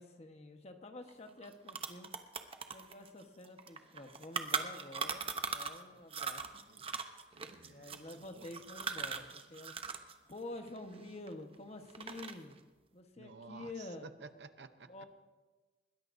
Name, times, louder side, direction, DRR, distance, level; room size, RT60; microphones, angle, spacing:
voice 1, 0.0-2.1 2.7-6.6 7.6-9.7 10.3-12.6 12.9-14.1 14.8-15.1, left 2 dB, 40° left, 5 dB, 1.2 m, -48 dB
sound 1, 1.1-1.2 1.4-5.8 6.1-10.1 10.4-11.5 11.9-12.5, right 5 dB, 35° right, 0.8 m, -39 dB
voice 2, 7.3-8.5 13.2-14.9, right 4 dB, 70° right, 10 dB, 0.8 m, -54 dB
21.0 x 17.0 x 2.7 m, 1.2 s
head